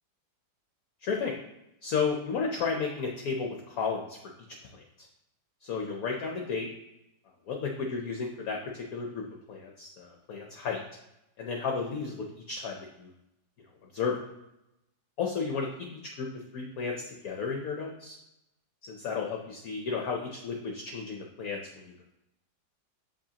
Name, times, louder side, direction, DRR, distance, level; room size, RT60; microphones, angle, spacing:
voice 1, 1.0-1.3 1.8-4.2 4.7-5.1 5.6-6.7 7.5-9.2 9.5-10.8 11.4-13.1 13.9-14.2 15.2-16.3 16.5-18.1 18.8-22.1, left 5 dB, 65° left, 1 dB, 0.9 m, -33 dB
7.1 x 5.1 x 2.8 m, 0.89 s
omnidirectional pair, 2.1 m